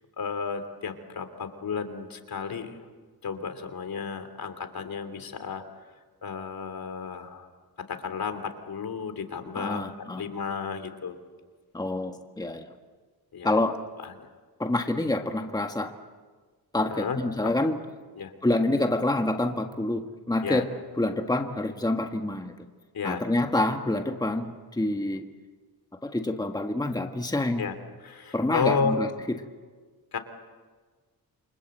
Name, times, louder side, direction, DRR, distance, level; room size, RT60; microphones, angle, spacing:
voice 1, 0.2-2.8 3.2-5.6 6.2-7.5 7.8-11.2 13.3-13.5 14.0-14.3 16.9-17.2 17.4-17.5 18.1-18.3 20.4-20.6 22.9-23.2 27.6-27.7 28.0-29.0 30.1-30.2, left 5 dB, 65° left, 9 dB, 3.2 m, -32 dB
voice 2, 9.5-10.2 11.7-12.7 13.4-13.8 14.6-15.9 16.7-17.8 18.4-20.7 21.0-22.7 23.0-25.2 26.0-27.7 28.3-29.4, left 2 dB, 10° left, 4 dB, 1.6 m, -27 dB
28.5 x 25.5 x 7.9 m, 1.4 s
wide cardioid pair, 110°, 38 cm